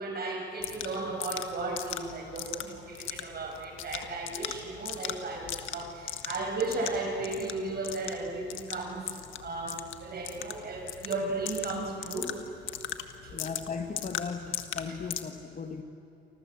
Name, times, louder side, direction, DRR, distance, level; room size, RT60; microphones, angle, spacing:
voice 1, 0.0-12.3 13.2-13.4 14.9-15.0, right 3 dB, 50° right, 1 dB, 7.0 m, -35 dB
sound 1, 0.6-15.2, left 11 dB, 80° left, 1.6 m, -39 dB
voice 2, 13.3-15.8, left 5 dB, 40° left, 7 dB, 1.9 m, -37 dB
28.5 x 26.0 x 7.9 m, 2.8 s
cardioid pair, 90°, 20 cm